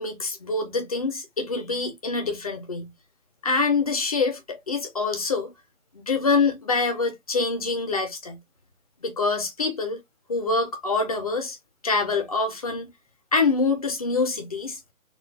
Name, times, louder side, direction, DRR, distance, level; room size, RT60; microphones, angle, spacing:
voice 1, 0.0-2.9 3.4-5.5 5.9-8.4 9.0-10.0 10.3-11.6 11.8-12.9 13.3-14.8, left 4 dB, 25° left, 0.6 m, -25 dB
4.0 x 2.4 x 2.5 m
hypercardioid pair, 160°, 43 cm